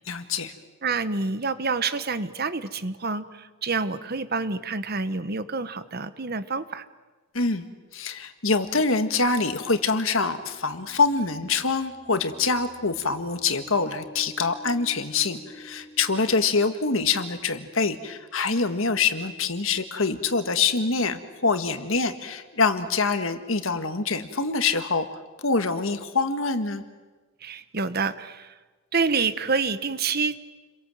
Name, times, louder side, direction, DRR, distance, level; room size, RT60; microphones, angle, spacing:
voice 1, 0.1-0.5 7.3-7.6 7.9-26.8, left 4 dB, 70° left, 9 dB, 1.8 m, -25 dB
voice 2, 0.8-6.8 27.4-28.5 28.9-30.4, right 4 dB, 45° right, 13 dB, 1.1 m, -27 dB
sound 1, 8.8-8.9 10.4-17.3, equal, 10° left, 2.6 m, -49 dB
30.0 x 23.5 x 7.8 m, 1.3 s
head